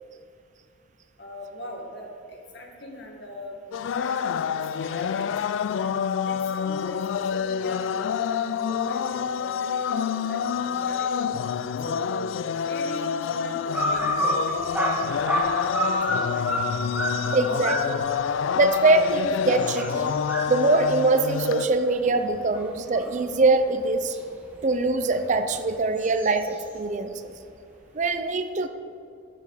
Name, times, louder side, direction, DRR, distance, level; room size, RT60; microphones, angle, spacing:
voice 1, 1.2-3.6 3.9-4.3 4.8-6.0 6.2-11.3 11.8-12.3 12.6-16.4, left 1 dB, 60° left, 1 dB, 1.7 m, -40 dB
sound 1, 3.7-21.7, left 7 dB, 75° left, 0.3 m, -27 dB
sound 2, 13.7-23.3 23.8-26.8, right 1 dB, 10° right, 1.8 m, -30 dB
voice 2, 17.3-18.1 18.5-20.1 20.5-24.2 24.6-27.2 27.9-28.7, right 3 dB, 40° right, 9 dB, 0.5 m, -23 dB
12.0 x 6.9 x 4.8 m, 2.4 s
head